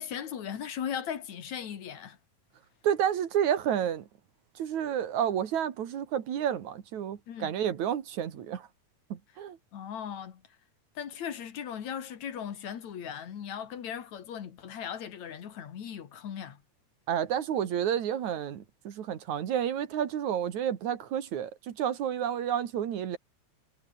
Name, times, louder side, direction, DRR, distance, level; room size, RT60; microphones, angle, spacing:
voice 1, 0.0-2.2 7.3-7.5 9.7-10.4 10.9-16.6, left 8 dB, 70° left, 3.3 m, -38 dB
voice 2, 2.8-4.0 4.6-8.7 9.1-9.6 17.1-23.2, right 9 dB, 75° right, 3.2 m, -30 dB
omnidirectional pair, 3.3 m